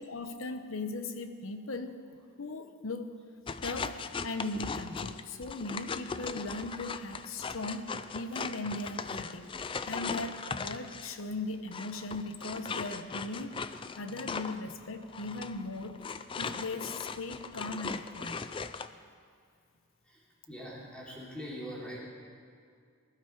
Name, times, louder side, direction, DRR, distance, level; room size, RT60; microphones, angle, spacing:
voice 1, 0.0-2.0 2.4-3.1 3.6-4.0 4.2-9.5 9.9-16.0 16.4-18.4, left 2 dB, 70° left, 9 dB, 0.9 m, -38 dB
sound 1, 3.5-11.2 11.7-18.9, left 5 dB, 25° left, 0.3 m, -39 dB
voice 2, 20.0-22.0, equal, 5° left, -6 dB, 3.1 m, -43 dB
20.0 x 12.0 x 4.6 m, 2.3 s
head